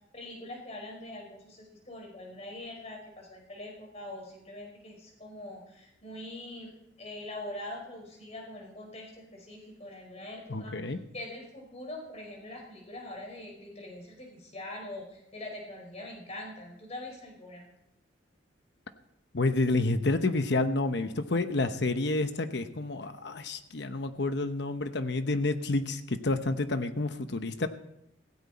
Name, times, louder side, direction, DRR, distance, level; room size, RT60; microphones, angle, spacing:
voice 1, 0.1-6.7 7.0-17.7, left 1 dB, 35° left, 1 dB, 4.9 m, -43 dB
voice 2, 10.5-11.0 19.3-27.7, left 2 dB, 65° left, 9 dB, 0.9 m, -29 dB
17.0 x 16.5 x 4.2 m, 0.83 s
head